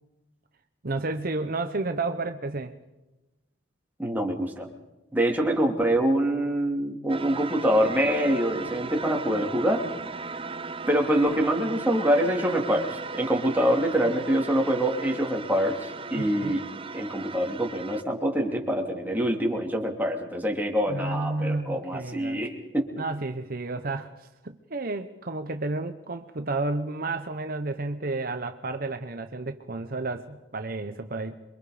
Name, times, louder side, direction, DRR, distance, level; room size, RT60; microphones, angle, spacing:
voice 1, 0.8-2.7 16.1-16.5 20.9-22.5 23.0-31.4, right 2 dB, 50° right, 8 dB, 1.0 m, -31 dB
voice 2, 4.0-4.7 5.1-9.8 10.9-16.6 16.9-22.9, equal, 10° right, 1 dB, 2.8 m, -25 dB
sound 1, 7.1-18.0, right 4 dB, 30° right, 0.7 m, -37 dB
27.0 x 23.5 x 5.1 m, 1.0 s
head